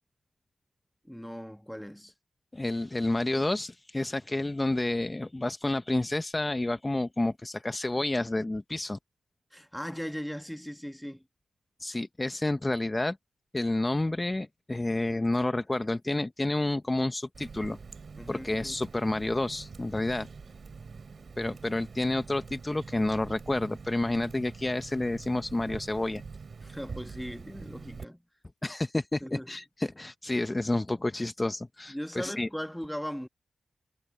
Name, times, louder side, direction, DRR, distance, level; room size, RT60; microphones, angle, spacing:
voice 1, 1.0-2.1 9.5-11.2 18.2-18.5 26.6-28.2 29.2-29.6 31.9-33.3, equal, 5° left, 1.4 m, -38 dB
voice 2, 2.5-9.0 11.8-13.2 13.5-17.8 18.3-20.3 21.4-26.2 28.6-32.5, left 2 dB, 20° left, 0.7 m, -30 dB
Water tap faucet, 17.3-28.0, right 5 dB, 55° right, 2.9 m, -45 dB
cardioid pair, 80°, 0 cm